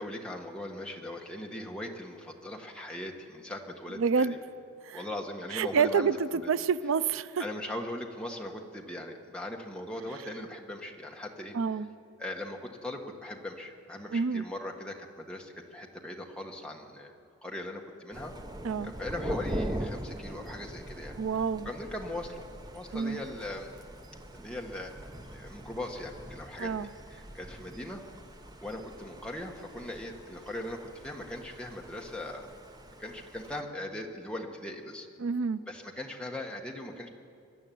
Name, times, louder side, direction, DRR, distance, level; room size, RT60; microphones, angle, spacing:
voice 1, 0.0-4.3 4.9-6.5 7.4-11.5 12.2-17.1 17.4-18.3 18.8-21.1 21.6-22.4 22.7-23.7 24.3-24.9 25.3-28.0 28.6-32.5 33.0-35.1 35.7-37.1, left 1 dB, 5° left, 0 dB, 1.5 m, -39 dB
voice 2, 4.0-4.4 4.8-5.0 5.5-7.4 11.5-11.9 14.1-14.4 18.6-18.9 21.2-21.7 22.9-23.2 26.6-26.9 35.2-35.6, right 5 dB, 70° right, 15 dB, 0.4 m, -28 dB
Thunder, 18.1-33.6, equal, 20° right, 0.8 m, -42 dB
23.5 x 11.5 x 9.3 m, 2.4 s
head